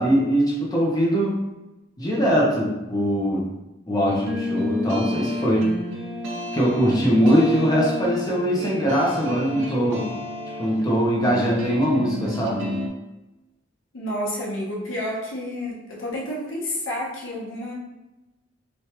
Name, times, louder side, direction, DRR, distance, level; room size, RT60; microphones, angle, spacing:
voice 1, 0.0-1.4 2.0-3.5 3.9-5.7 6.5-10.1 10.6-12.7, equal, 20° left, -4 dB, 0.6 m, -21 dB
sound 1, 4.1-12.9, left 1 dB, 80° right, 0.5 m, -31 dB
voice 2, 13.9-17.7, left 1 dB, 85° left, -4 dB, 0.9 m, -30 dB
3.1 x 2.3 x 2.9 m, 1.0 s
head